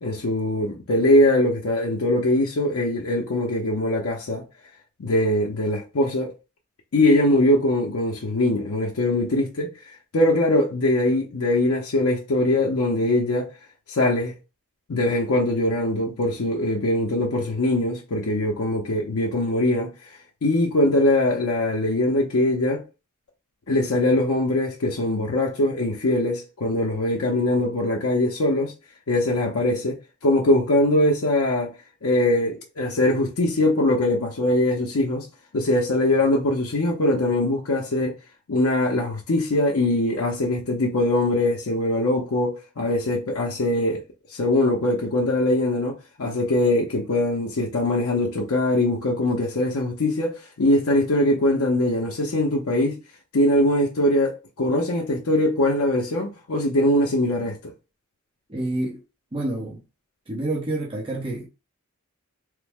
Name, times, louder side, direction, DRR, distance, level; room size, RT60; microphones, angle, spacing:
voice 1, 0.0-4.4 5.0-6.3 6.9-9.7 10.1-13.5 13.9-14.3 14.9-19.9 20.4-22.8 23.7-28.7 29.1-30.0 30.2-31.7 32.0-35.3 35.5-38.1 38.5-44.0 44.3-53.0 53.3-57.7, left 1 dB, 70° left, 0.6 m, -22 dB
voice 2, 58.5-59.0 59.3-59.8 60.3-61.5, right 2 dB, 25° right, 0.7 m, -28 dB
3.2 x 2.0 x 3.4 m
head